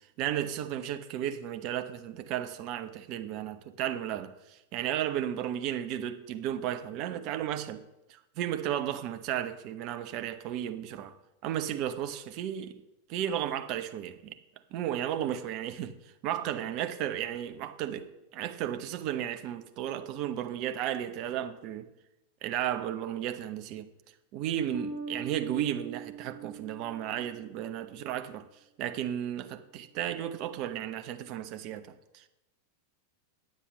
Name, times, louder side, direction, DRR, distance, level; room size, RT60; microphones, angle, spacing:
voice 1, 0.2-7.8 8.1-11.2 11.4-12.8 13.1-14.4 14.7-16.0 16.2-21.9 22.4-23.9 24.3-28.5 28.8-32.3, right 11 dB, 40° right, 0.8 m, -34 dB
Bass guitar, 24.7-27.8, right 5 dB, 25° right, 3.6 m, -41 dB
10.0 x 7.5 x 6.4 m
figure-of-eight pair, 90°, 0 cm